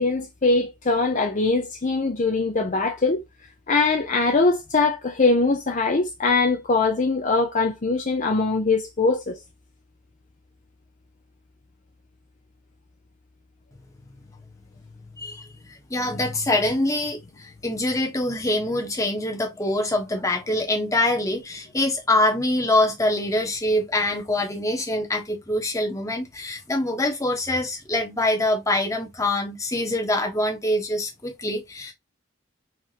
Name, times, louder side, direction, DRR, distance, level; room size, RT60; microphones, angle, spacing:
voice 1, 0.0-3.2 3.7-9.4, left 3 dB, 40° left, 0.6 m, -22 dB
voice 2, 15.9-31.9, left 1 dB, 15° left, 1.2 m, -24 dB
4.7 x 3.6 x 2.9 m
head